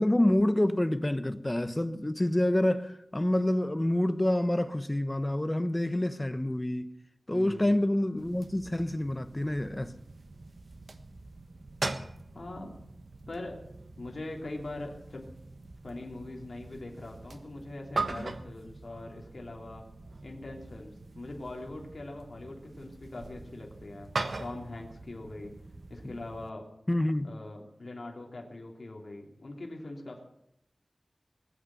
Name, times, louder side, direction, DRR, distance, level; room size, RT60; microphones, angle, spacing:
voice 1, 0.0-6.9 7.3-9.9 26.0-26.2 26.9-27.3, left 1 dB, 20° left, 1.1 m, -27 dB
voice 2, 7.3-7.8 12.3-12.8 13.3-13.6 14.0-15.3 15.8-19.8 20.2-24.1 24.4-25.5 25.9-26.6 27.2-30.2, left 2 dB, 60° left, 3.3 m, -42 dB
sound 1, 8.2-26.5, right 3 dB, 65° right, 1.3 m, -42 dB
20.5 x 8.9 x 7.9 m
wide cardioid pair, 75°, 0 cm